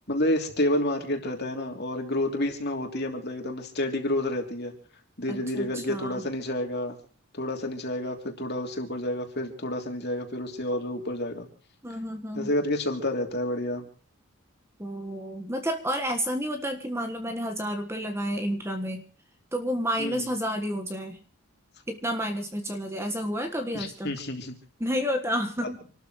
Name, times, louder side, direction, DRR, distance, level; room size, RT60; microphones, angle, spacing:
voice 1, 0.1-4.7 5.2-7.0 7.3-11.5 12.3-13.9 20.0-20.3 23.7-24.5, left 1 dB, 45° left, 3 dB, 3.1 m, -29 dB
voice 2, 5.3-6.2 11.8-12.5 14.8-19.0 19.5-21.2 21.9-24.1 24.8-25.8, equal, 10° right, 5 dB, 1.5 m, -30 dB
28.0 x 13.0 x 3.2 m, 0.41 s
head